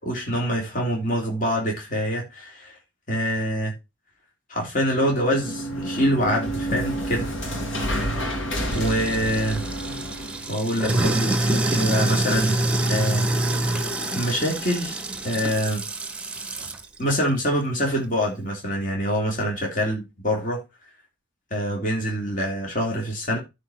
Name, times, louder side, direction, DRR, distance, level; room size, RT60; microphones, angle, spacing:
voice 1, 0.0-2.8 3.1-3.7 4.5-7.3 8.7-9.6 10.5-12.6 12.9-13.6 14.1-14.9 15.2-15.8 17.0-20.6 21.5-23.4, equal, 40° left, 3.4 m, -25 dB
sound 1, 5.0-10.5, equal, 65° left, 3.1 m, -29 dB
Sink (filling or washing), 8.7-16.9, right 2 dB, 5° right, 1.1 m, -26 dB
13.0 x 4.9 x 4.5 m
head